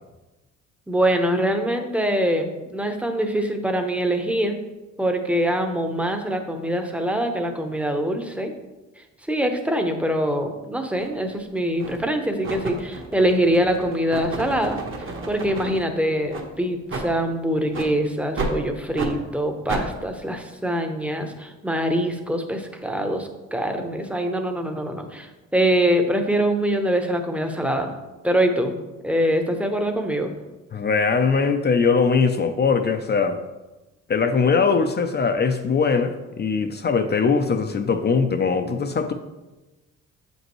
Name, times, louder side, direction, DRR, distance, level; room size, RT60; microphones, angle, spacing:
voice 1, 0.9-4.6 5.0-8.5 9.3-14.8 15.3-27.9 28.2-28.8 29.0-30.3, right 1 dB, 5° right, 5 dB, 0.8 m, -24 dB
sound 1, 11.0-11.1 11.8-12.1 12.4-15.8 16.3-16.5 16.9-17.1 17.7-17.9 18.4-18.6 19.0-19.1 19.7-19.9, right 2 dB, 45° right, 1.2 m, -31 dB
voice 2, 30.7-33.4 34.1-39.1, left 5 dB, 35° left, 7 dB, 0.5 m, -21 dB
7.5 x 5.3 x 3.1 m, 1.1 s
cardioid pair, 90°, 30 cm